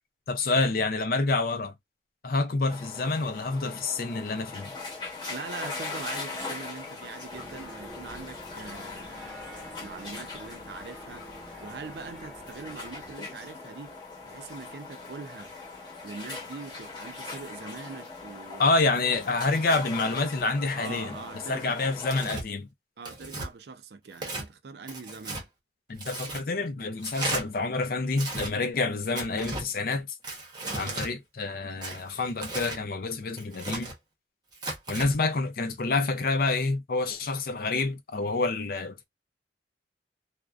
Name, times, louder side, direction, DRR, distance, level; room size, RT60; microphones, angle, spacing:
voice 1, 0.3-1.7 2.2-4.7 18.6-21.2 21.5-22.7 25.9-30.1 30.7-33.9 34.9-39.0, left 3 dB, 50° left, 0.4 m, -28 dB
sound 1, 2.7-22.2, left 3 dB, 25° left, 1.0 m, -40 dB
voice 2, 5.3-9.4 9.8-11.3 11.6-13.9 14.2-15.5 16.0-19.0 20.7-21.8 23.0-25.5 26.3-26.4 30.6-31.2, right 4 dB, 65° right, 0.4 m, -42 dB
sound 2, 7.3-13.2, equal, ahead, 1.0 m, -47 dB
Tearing, 22.1-22.4 23.0-23.5 24.1-24.5 24.9-25.4 26.0-26.4 27.0-27.4 28.1-28.5 29.1-29.7 30.2-31.1 31.8-32.8 33.4-33.9 34.5-35.1, right 2 dB, 25° right, 0.8 m, -35 dB
2.5 x 2.1 x 2.3 m
head